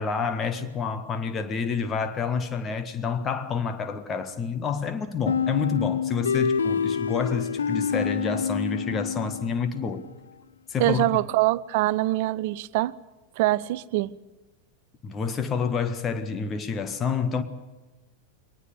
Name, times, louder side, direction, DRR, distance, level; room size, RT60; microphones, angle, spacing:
voice 1, 0.0-10.0 10.7-11.1 15.0-17.4, left 5 dB, 25° left, 1.6 m, -28 dB
sound 1, 5.3-9.9, left 6 dB, 70° left, 0.6 m, -27 dB
voice 2, 10.8-12.9 13.4-14.1, right 17 dB, 50° right, 0.6 m, -24 dB
22.0 x 20.0 x 6.9 m
figure-of-eight pair, 90°, 0 cm